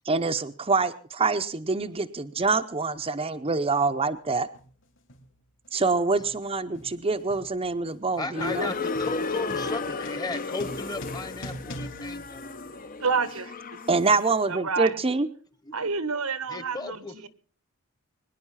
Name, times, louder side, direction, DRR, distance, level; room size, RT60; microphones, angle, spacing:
voice 1, 0.0-4.5 5.7-8.7 13.9-15.3, right 3 dB, 25° right, 0.7 m, -25 dB
sound 1, 2.9-3.1 4.0-4.3 4.5-13.1, equal, 60° left, 3.5 m, -45 dB
voice 2, 8.2-12.6 15.6-15.7 16.5-17.3, left 3 dB, 20° left, 1.2 m, -35 dB
sound 2, 8.3-14.2, left 4 dB, 40° left, 0.8 m, -34 dB
voice 3, 13.0-13.8 14.5-15.0 15.7-17.0, right 5 dB, 85° right, 1.5 m, -28 dB
23.5 x 10.5 x 5.7 m
head